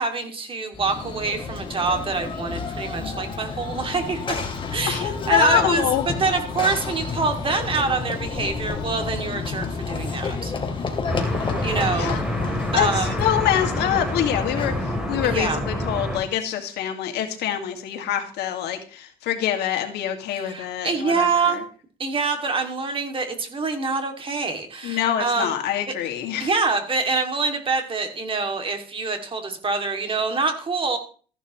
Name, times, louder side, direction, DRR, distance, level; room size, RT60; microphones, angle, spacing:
voice 1, 0.0-4.2 4.7-5.8 6.2-10.5 11.6-12.2 12.7-13.1 15.2-15.6 20.3-21.6 22.0-25.6 26.4-31.0, right 4 dB, 30° right, 5 dB, 2.4 m, -25 dB
Run / Train, 0.7-15.2, left 4 dB, 30° left, 2.4 m, -31 dB
sound 1, 3.2-10.1, left 4 dB, 50° left, 2.0 m, -42 dB
voice 2, 4.9-6.0 11.9-12.2 12.8-21.6 24.8-26.5, left 10 dB, 80° left, 5 dB, 2.0 m, -25 dB
sound 2, 11.1-16.2, left 1 dB, 5° right, 3.1 m, -27 dB
14.5 x 11.0 x 3.1 m, 0.40 s
cardioid pair, 110°, 17 cm